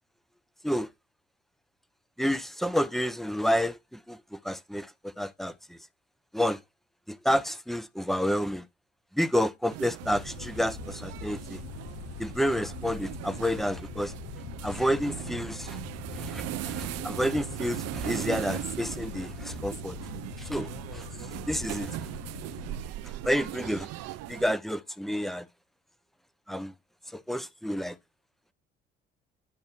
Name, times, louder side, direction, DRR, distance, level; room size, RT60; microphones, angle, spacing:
voice 1, 2.2-5.8 6.3-6.6 7.1-8.6 9.1-11.6 12.2-14.1 14.6-15.8 16.1-20.0 20.4-21.0 21.5-22.1 23.0-23.9 24.3-25.4 26.5-26.7 27.1-28.0, equal, ahead, 1.0 m, -29 dB
sound 1, 9.7-24.5, right 15 dB, 55° right, 0.6 m, -39 dB
sound 2, 10.0-22.9, left 6 dB, 65° left, 1.2 m, -42 dB
11.0 x 5.2 x 4.7 m
figure-of-eight pair, 45°, 30 cm